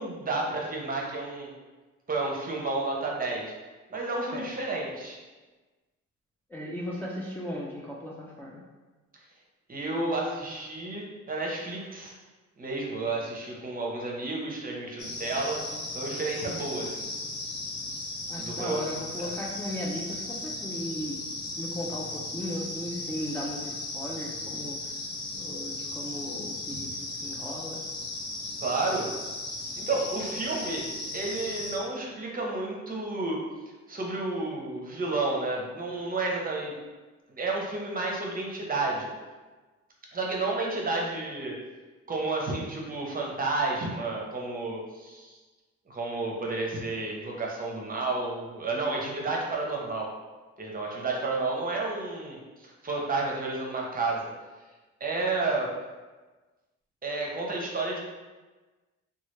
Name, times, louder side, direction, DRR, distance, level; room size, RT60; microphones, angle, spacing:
voice 1, 0.0-1.5 2.1-3.5 3.9-5.2 9.7-12.1 12.6-15.6 15.9-17.1 18.4-18.9 19.2-19.3 26.7-26.8 28.6-29.1 29.8-30.8 31.1-33.4 33.9-36.7 37.3-39.1 40.1-41.5 42.1-45.4 45.9-50.1 50.6-54.3 55.0-55.7 57.0-58.0, right 3 dB, 30° right, -2 dB, 0.7 m, -31 dB
voice 2, 6.5-8.6 18.3-21.2 21.6-24.9 25.3-27.8, left 1 dB, 5° left, -5 dB, 0.4 m, -36 dB
sound 1, 15.0-31.8, left 2 dB, 55° left, 0.8 m, -36 dB
3.0 x 2.3 x 3.1 m, 1.3 s
cardioid pair, 90°, 30 cm